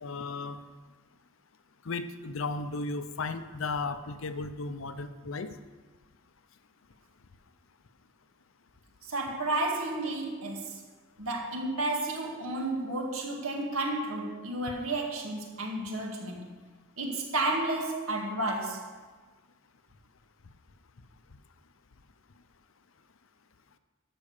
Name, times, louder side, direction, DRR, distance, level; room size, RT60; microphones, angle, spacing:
voice 1, 0.0-0.6 1.9-5.5, left 3 dB, 65° left, 10 dB, 0.7 m, -35 dB
voice 2, 9.0-10.8 11.2-16.5 17.0-18.9, right 2 dB, 80° right, 1 dB, 2.0 m, -32 dB
12.5 x 6.1 x 6.6 m, 1.3 s
head